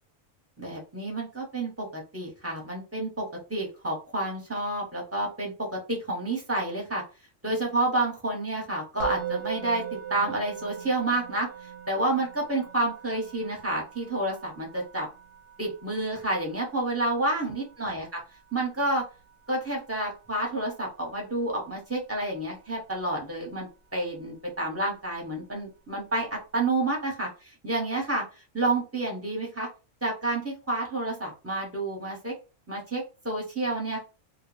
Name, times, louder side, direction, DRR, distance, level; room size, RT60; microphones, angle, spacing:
voice 1, 0.6-7.0 7.4-11.5 11.9-15.1 15.6-18.1 18.5-19.0 19.5-27.3 27.6-28.2 28.5-29.7 30.0-32.3 32.7-34.0, right 2 dB, 15° right, -2 dB, 0.8 m, -29 dB
Musical instrument, 9.0-20.1, right 10 dB, 85° right, 1.1 m, -41 dB
2.2 x 2.2 x 3.1 m, 0.32 s
omnidirectional pair, 1.4 m